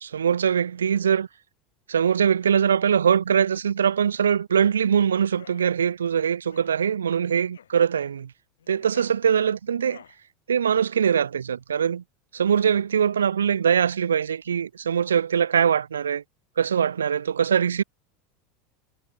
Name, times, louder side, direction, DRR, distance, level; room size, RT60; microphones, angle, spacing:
voice 1, 0.0-1.3 1.9-8.3 8.7-10.0 10.5-12.0 12.3-16.2 16.6-17.8, right 8 dB, 85° right, 0.4 m, -22 dB
sound 1, 5.2-5.6 6.4-6.8 7.5-7.8 8.6-9.2 9.7-10.2, left 8 dB, 85° left, 5.1 m, -50 dB
hypercardioid pair, 85°, 0 cm